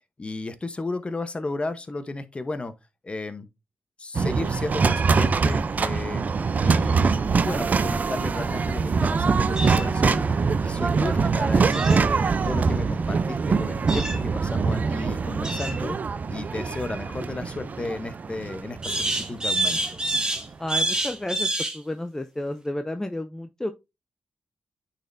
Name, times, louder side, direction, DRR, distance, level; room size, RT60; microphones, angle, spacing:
voice 1, 0.2-2.7 3.0-3.5 4.0-6.2 6.6-10.3 10.6-12.2 12.4-16.0 16.3-20.0, left 2 dB, 35° left, 0.9 m, -34 dB
sound 1, 4.1-20.4, right 5 dB, 50° right, 0.5 m, -24 dB
sound 2, 9.6-9.8 11.7-12.1 13.9-14.2 15.4-15.8 18.8-21.8, right 1 dB, 20° right, 1.8 m, -27 dB
voice 2, 20.6-21.5 21.7-23.7, left 1 dB, 15° left, 0.6 m, -31 dB
8.9 x 4.2 x 2.6 m
supercardioid pair, 50°, 3 cm